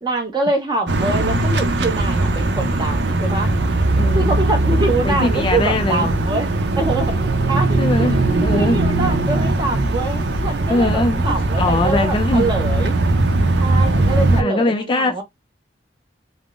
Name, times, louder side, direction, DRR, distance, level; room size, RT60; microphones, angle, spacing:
voice 1, 0.0-3.5 4.1-6.5 6.8-7.2 7.5-7.8 8.1-8.2 8.5-13.0 13.6-15.2, right 2 dB, 25° right, 0.8 m, -24 dB
sound 1, 0.9-14.4, right 2 dB, 70° right, 0.6 m, -19 dB
voice 2, 4.0-4.4 5.0-6.1 7.8-8.8 9.1-9.2 10.7-11.2 11.5-12.5 14.3-15.2, left 2 dB, 30° left, 0.4 m, -21 dB
3.5 x 2.0 x 2.4 m
head